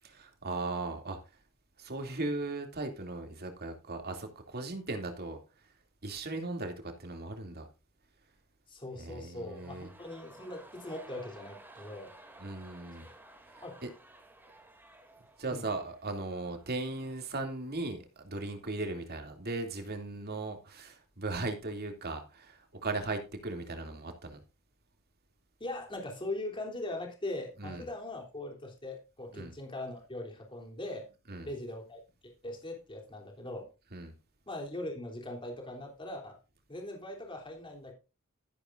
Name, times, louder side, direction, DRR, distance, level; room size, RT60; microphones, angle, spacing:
voice 1, 0.0-1.2 1.8-5.4 6.0-7.7 9.0-9.9 12.4-13.1 13.8-13.9 15.4-24.4 27.6-27.8 29.3-29.5 31.3-31.5 33.9-34.1, right 2 dB, 50° right, 2.7 m, -37 dB
voice 2, 8.7-12.1 13.6-13.8 15.5-15.6 25.6-31.1 31.4-33.7 34.5-36.4 36.7-37.9, left 1 dB, 25° left, 3.3 m, -40 dB
sound 1, 9.3-17.4 17.7-17.8, right 1 dB, 10° right, 2.6 m, -55 dB
13.5 x 10.5 x 2.6 m
head